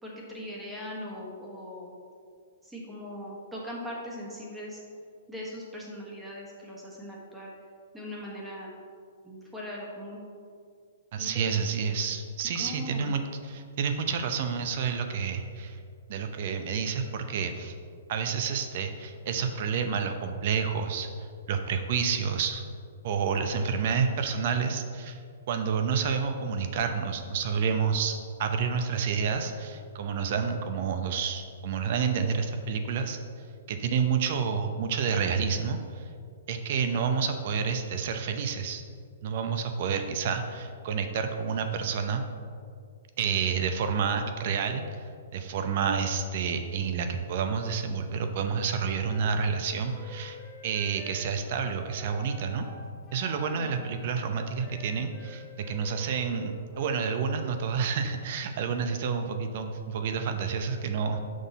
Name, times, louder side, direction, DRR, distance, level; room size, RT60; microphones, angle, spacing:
voice 1, 0.0-1.9 2.6-4.8 5.3-7.5 7.9-8.7 9.2-10.2 11.2-11.9 12.5-13.1 53.6-53.8, equal, 5° right, -4 dB, 1.3 m, -40 dB
voice 2, 11.1-15.8 16.1-17.7 18.1-21.1 21.5-22.6 23.0-25.2 25.5-33.2 33.7-36.0 36.5-38.8 39.2-42.3 43.2-45.0 45.3-50.4 50.6-52.7 53.1-61.2, right 6 dB, 50° right, 6 dB, 0.7 m, -29 dB
Wind instrument woodwind instrument, 48.8-52.8 53.1-57.3, left 2 dB, 15° left, 0.8 m, -48 dB
6.3 x 5.6 x 4.0 m, 2.2 s
hypercardioid pair, 150°, 0 cm